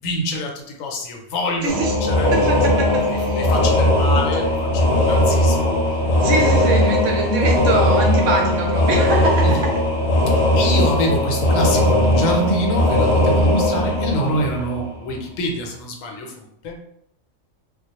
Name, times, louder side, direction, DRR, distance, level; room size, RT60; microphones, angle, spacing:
voice 1, 0.0-2.3 2.8-5.8 6.3-6.9 9.4-9.6 10.6-16.8, left 1 dB, 80° left, 1 dB, 1.0 m, -26 dB
voice 2, 1.6-1.9 2.3-3.4 6.2-9.7, right 2 dB, 70° right, 1 dB, 0.9 m, -23 dB
sound 1, 1.7-15.1, left 1 dB, 35° left, 0.3 m, -18 dB
2.3 x 2.1 x 2.8 m, 0.74 s
omnidirectional pair, 1.4 m